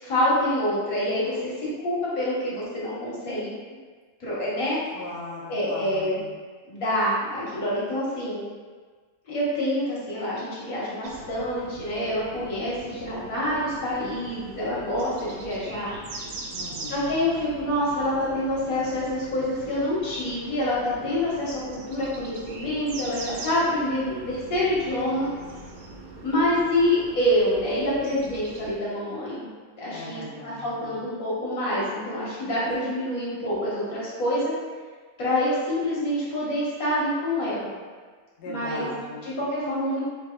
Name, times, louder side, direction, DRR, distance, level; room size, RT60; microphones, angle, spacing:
voice 1, 0.0-1.5 1.8-3.5 4.2-4.8 5.5-6.2 6.7-8.4 9.3-15.9 16.9-25.3 26.2-34.5 35.2-37.7 38.5-38.9 39.2-40.0, left 1 dB, 70° left, -7 dB, 1.6 m, -26 dB
voice 2, 4.9-6.3 16.5-17.3 29.9-31.0 38.4-39.3, left 1 dB, 50° left, -5 dB, 0.8 m, -38 dB
sound 1, 11.0-28.7, right 2 dB, 85° right, 1.1 m, -42 dB
5.2 x 2.8 x 2.2 m, 1.5 s
omnidirectional pair, 1.5 m